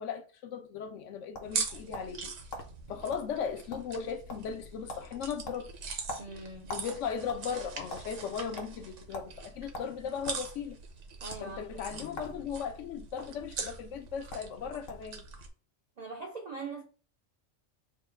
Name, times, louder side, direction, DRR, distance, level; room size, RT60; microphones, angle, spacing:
voice 1, 0.0-2.3 2.9-5.7 6.7-10.8 11.4-15.2, left 7 dB, 80° left, 0.9 m, -37 dB
sound 1, 0.8-2.2 2.5-2.7 3.1-3.3 3.6-4.0 4.3-4.6 4.9-5.1 5.4-6.9 7.2-8.0 8.6-8.7 9.1-9.3 9.7-10.4 11.2-11.4 12.1-12.4 12.7-13.2 14.0-14.1 14.3-14.5 14.9-15.1, left 1 dB, 55° left, 1.0 m, -42 dB
sound 2, 1.4-15.5, right 5 dB, 75° right, 1.1 m, -42 dB
voice 2, 6.2-6.8 11.2-11.8 16.0-16.8, right 3 dB, 60° right, 0.4 m, -42 dB
3.5 x 2.3 x 4.4 m
omnidirectional pair, 1.3 m